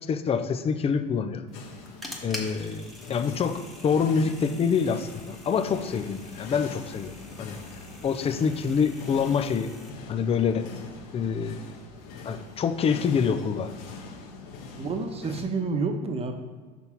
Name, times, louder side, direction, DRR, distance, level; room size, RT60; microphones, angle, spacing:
voice 1, 0.1-1.4 2.2-7.1 7.4-7.6 8.0-9.7 10.1-10.7 11.1-11.6 12.2-13.7, left 6 dB, 30° left, 10 dB, 0.6 m, -26 dB
sound 1, 1.5-15.4, left 4 dB, 75° left, 1.3 m, -43 dB
sound 2, 1.5-9.9, left 1 dB, ahead, 1.5 m, -45 dB
voice 2, 14.8-16.3, right 4 dB, 30° right, 6 dB, 1.1 m, -29 dB
6.0 x 5.4 x 4.5 m, 1.4 s
hypercardioid pair, 95°, 21 cm